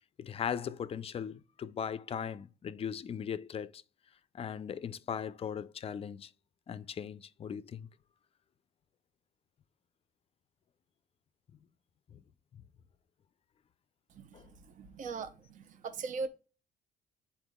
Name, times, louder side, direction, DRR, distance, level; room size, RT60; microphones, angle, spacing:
voice 1, 0.2-3.8 4.3-6.3 6.7-7.9 12.1-12.2 12.5-12.6 14.3-14.5, left 8 dB, 35° left, 0.4 m, -38 dB
voice 2, 14.8-16.3, right 4 dB, 50° right, 0.7 m, -39 dB
9.7 x 4.2 x 2.3 m
cardioid pair, 110°, 17 cm